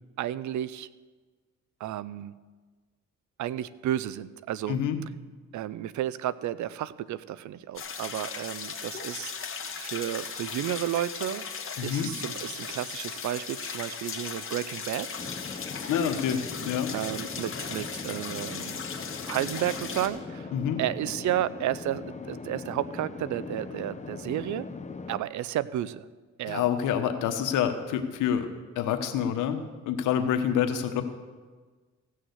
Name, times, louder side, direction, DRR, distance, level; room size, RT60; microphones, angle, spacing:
voice 1, 0.2-0.9 1.8-2.3 3.4-4.8 5.5-9.3 9.7-11.4 11.8-15.1 16.9-18.8 19.3-20.5 20.8-24.6 25.1-26.1 26.4-26.6, right 12 dB, 75° right, 17 dB, 0.6 m, -32 dB
voice 2, 4.7-5.0 11.8-12.1 15.9-16.9 20.5-20.8 26.5-28.5 28.7-29.6 29.9-31.0, left 9 dB, 90° left, 7 dB, 1.3 m, -27 dB
sound 1, 7.7-20.1, left 6 dB, 45° left, 1.8 m, -37 dB
sound 2, 15.2-25.2, left 4 dB, 25° left, 0.9 m, -40 dB
16.0 x 6.4 x 8.0 m, 1.4 s
cardioid pair, 90°, 30 cm